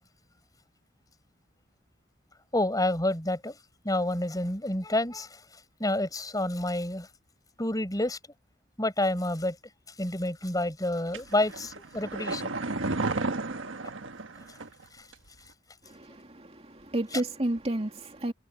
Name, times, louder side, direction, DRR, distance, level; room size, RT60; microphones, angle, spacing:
voice 1, 2.5-3.6 3.8-5.4 5.8-7.1 7.6-8.2 8.8-9.6 10.0-12.5, left 1 dB, 20° left, 5.4 m, -28 dB
sound 1, 11.1-14.8 15.1-15.2, right 3 dB, 90° right, 1.4 m, -33 dB
voice 2, 15.8-18.3, right 1 dB, 30° right, 2.7 m, -32 dB
head